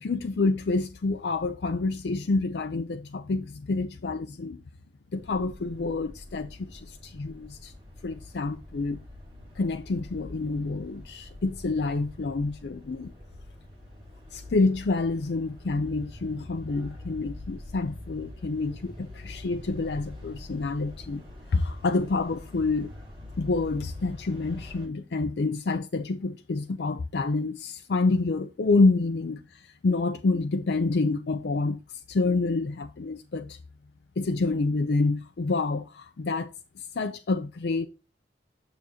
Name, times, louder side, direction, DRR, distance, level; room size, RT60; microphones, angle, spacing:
voice 1, 0.0-4.6 5.1-7.7 8.0-9.0 9.6-13.1 14.3-21.2 21.5-22.9 23.4-33.6 34.2-37.9, left 3 dB, 70° left, 0.5 m, -28 dB
sound 1, 5.2-24.9, left 1 dB, 30° right, 3.8 m, -44 dB
9.4 x 6.3 x 2.8 m
head